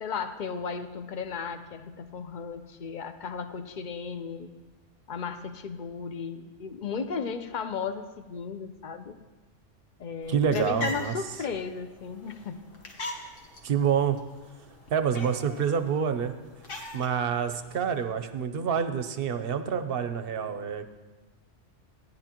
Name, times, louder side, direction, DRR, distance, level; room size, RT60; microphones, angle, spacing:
voice 1, 0.0-4.5 5.1-9.2 10.0-12.6, left 6 dB, 50° left, 9 dB, 0.6 m, -35 dB
sound 1, 10.2-18.0, left 1 dB, 90° left, 1.7 m, -42 dB
voice 2, 10.3-11.1 13.6-14.2 14.9-16.3 16.9-20.9, right 7 dB, 55° right, 9 dB, 0.8 m, -27 dB
16.0 x 10.5 x 2.9 m, 1.2 s
omnidirectional pair, 1.2 m